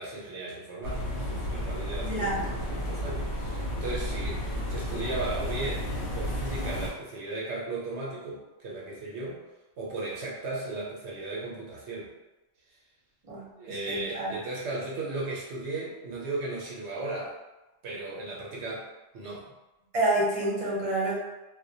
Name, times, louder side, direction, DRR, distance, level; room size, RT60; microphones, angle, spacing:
voice 1, 0.0-9.4 9.8-12.1 13.5-17.3 17.8-18.9 19.1-19.4, right 2 dB, 75° right, -4 dB, 0.9 m, -36 dB
sound 1, 0.8-6.9, equal, 85° left, 1.0 m, -32 dB
voice 2, 2.0-2.4 13.2-14.3 19.9-21.1, right 1 dB, 35° right, -6 dB, 0.7 m, -28 dB
2.2 x 2.1 x 2.6 m, 1.0 s
omnidirectional pair, 1.2 m